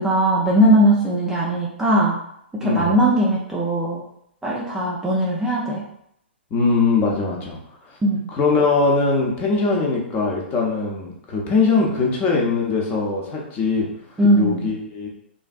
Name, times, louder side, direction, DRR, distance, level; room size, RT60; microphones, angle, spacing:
voice 1, 0.0-2.2 2.5-4.0 4.4-5.8 8.0-8.3 14.2-14.7, right 1 dB, 5° right, -6 dB, 0.5 m, -19 dB
voice 2, 2.6-3.0 6.5-7.6 8.3-13.9 14.3-15.1, left 4 dB, 25° left, -1 dB, 0.7 m, -21 dB
3.2 x 2.5 x 2.3 m, 0.74 s
figure-of-eight pair, 115°, 6 cm